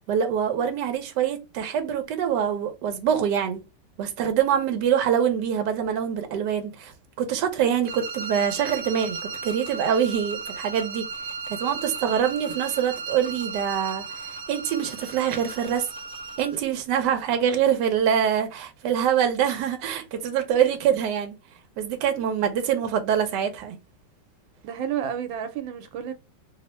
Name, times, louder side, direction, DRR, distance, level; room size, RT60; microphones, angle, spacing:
voice 1, 0.1-3.6 4.0-11.1 11.5-15.9 16.4-21.4 21.8-23.8, right 8 dB, 70° right, 1.3 m, -25 dB
sound 1, 7.8-16.6, right 5 dB, 45° right, 0.6 m, -35 dB
voice 2, 24.6-26.1, right 9 dB, 90° right, 1.4 m, -30 dB
3.4 x 2.0 x 4.2 m
omnidirectional pair, 2.1 m